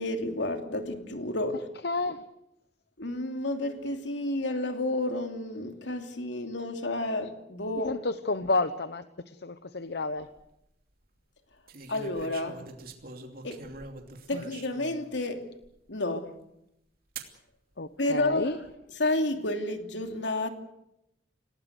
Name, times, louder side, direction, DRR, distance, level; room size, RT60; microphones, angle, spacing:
voice 1, 0.0-1.7 3.0-8.0 11.9-12.6 13.4-13.7 14.3-15.5 15.9-16.4 18.0-18.6 19.0-20.5, left 2 dB, 80° left, 2.8 m, -30 dB
voice 2, 1.8-2.2 7.8-10.3 14.3-14.4 17.8-18.6, left 2 dB, 60° left, 0.9 m, -31 dB
Picture with disposable camera with flash on, 10.0-10.4 11.7-15.0 15.6-15.7 17.2-17.4 18.3-18.7, right 3 dB, 55° right, 2.9 m, -44 dB
27.5 x 18.5 x 8.1 m
head